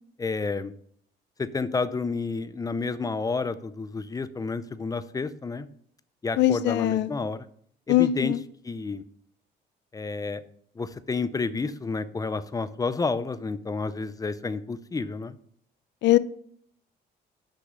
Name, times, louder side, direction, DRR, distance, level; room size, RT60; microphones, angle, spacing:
voice 1, 0.2-0.7 1.4-5.7 6.2-7.5 7.9-8.3 8.6-9.0 9.9-10.4 10.8-15.3, left 4 dB, 20° left, 0.5 m, -30 dB
voice 2, 6.4-7.1 7.9-8.4 16.0-16.2, left 14 dB, 70° left, 0.5 m, -21 dB
6.3 x 5.9 x 6.5 m
cardioid pair, 110°, 19 cm